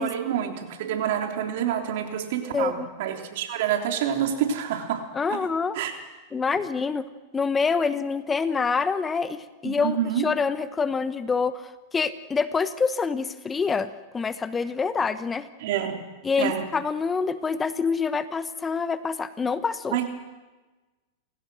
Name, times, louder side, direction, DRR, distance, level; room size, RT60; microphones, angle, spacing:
voice 1, 0.0-5.0 5.3-5.4 5.7-5.9 9.6-10.3 15.6-16.0 16.4-16.7 19.9-20.1, right 9 dB, 65° right, 4 dB, 3.3 m, -27 dB
voice 2, 2.5-2.9 5.1-5.8 6.3-7.1 7.3-13.9 14.1-15.5 16.2-20.0, left 5 dB, 20° left, 13 dB, 1.1 m, -26 dB
29.5 x 16.5 x 6.3 m, 1.2 s
hypercardioid pair, 110°, 0 cm